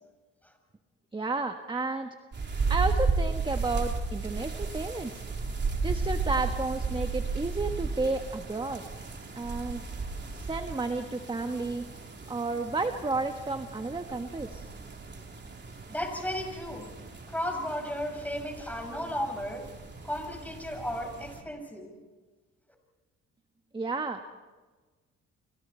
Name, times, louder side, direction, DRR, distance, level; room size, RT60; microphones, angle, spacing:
voice 1, 1.1-2.1 2.7-5.2 5.8-8.8 9.3-9.8 10.3-11.8 12.3-14.7 23.7-24.3, right 3 dB, 15° right, 6 dB, 1.3 m, -32 dB
sound 1, 2.3-21.4, right 4 dB, 35° right, 3.6 m, -34 dB
voice 2, 15.9-16.9 17.3-19.7 20.0-21.9, equal, 5° left, 3 dB, 6.1 m, -34 dB
29.0 x 26.0 x 4.5 m, 1.3 s
cardioid pair, 90°, 30 cm